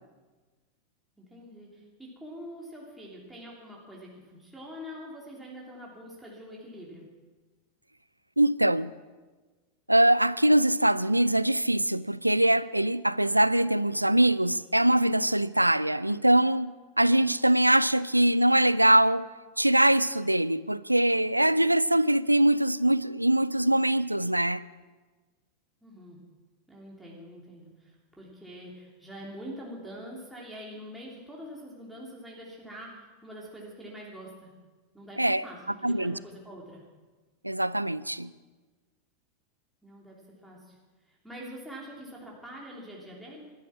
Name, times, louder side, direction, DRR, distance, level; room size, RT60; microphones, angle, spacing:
voice 1, 1.2-7.0 25.8-26.2 26.7-34.5 34.9-36.8 39.8-40.2 40.4-40.8 41.1-43.4, equal, 5° right, 3.2 m, -44 dB
voice 2, 8.4-8.9 9.9-16.7 17.0-19.3 19.6-24.6 35.2-35.4 35.8-36.2 37.4-38.3, right 1 dB, 90° right, 0.3 m, -23 dB
15.5 x 12.0 x 6.0 m
figure-of-eight pair, 85°, 0 cm